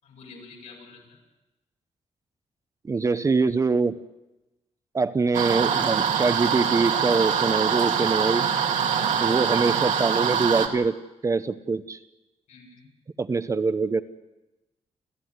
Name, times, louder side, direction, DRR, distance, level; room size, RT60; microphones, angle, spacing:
voice 1, 0.0-1.2 9.0-9.3 12.5-12.9, left 4 dB, 80° left, 0 dB, 7.4 m, -47 dB
voice 2, 2.8-4.0 4.9-8.5 9.2-11.0 11.2-12.0 13.2-14.0, right 4 dB, 25° right, 12 dB, 0.8 m, -24 dB
sound 1, 5.3-10.7, right 7 dB, 80° right, 2.5 m, -24 dB
30.0 x 13.5 x 9.6 m, 1.0 s
wide cardioid pair, 165°, 12 cm